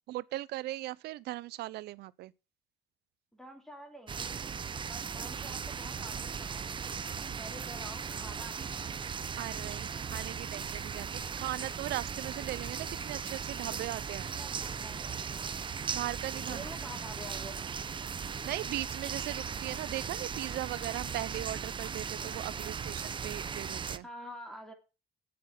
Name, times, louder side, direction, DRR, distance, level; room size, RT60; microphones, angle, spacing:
voice 1, 0.1-2.3 9.4-14.3 15.9-16.7 18.4-24.1, right 16 dB, 75° right, 0.6 m, -38 dB
voice 2, 3.3-4.4 4.8-6.9 7.4-8.6 14.3-15.8 16.5-17.6 24.0-24.7, equal, 5° left, 2.9 m, -48 dB
sound 1, 4.1-24.0, right 6 dB, 30° right, 0.7 m, -38 dB
8.7 x 8.2 x 7.5 m
cardioid pair, 110°, 17 cm